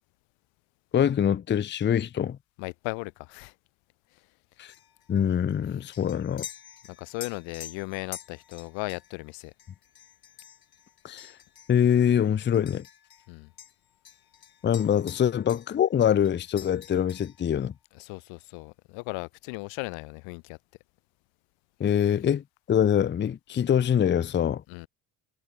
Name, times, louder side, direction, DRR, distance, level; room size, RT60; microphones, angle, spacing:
voice 1, 0.9-2.4 4.6-4.7 5.1-6.5 11.0-11.3 11.7-12.9 14.6-17.7 21.8-24.6, left 9 dB, 25° left, 0.5 m, -24 dB
voice 2, 2.6-3.5 6.9-9.5 13.3-13.5 17.9-20.6 24.7-24.9, left 28 dB, 85° left, 0.8 m, -37 dB
sound 1, 4.7-13.3 13.6-17.5, left 9 dB, 55° left, 6.6 m, -47 dB
supercardioid pair, 80°, 45 cm